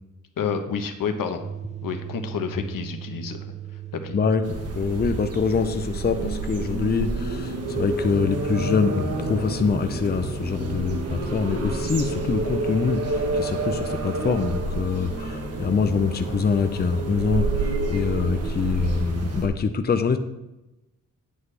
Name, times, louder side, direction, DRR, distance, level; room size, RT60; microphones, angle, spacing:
voice 1, 0.4-1.4 1.8-3.4 3.9-4.2, left 6 dB, 80° left, 6 dB, 1.0 m, -29 dB
sound 1, 1.4-12.3, right 5 dB, 20° right, 0.4 m, -39 dB
sound 2, 4.4-19.5, right 2 dB, 45° right, 1.2 m, -29 dB
voice 2, 4.7-20.2, left 5 dB, 30° left, 9 dB, 0.6 m, -25 dB
9.3 x 8.2 x 3.3 m, 0.97 s
wide cardioid pair, 120°, 33 cm